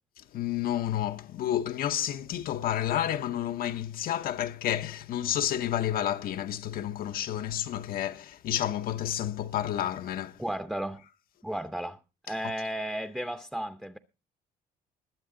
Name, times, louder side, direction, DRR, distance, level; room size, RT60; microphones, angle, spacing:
voice 1, 0.3-10.4, left 11 dB, 60° left, 0.7 m, -30 dB
voice 2, 10.4-11.0 11.4-12.0 12.3-14.0, right 1 dB, ahead, 0.7 m, -34 dB
21.5 x 7.5 x 3.7 m
cardioid pair, 110°, 17 cm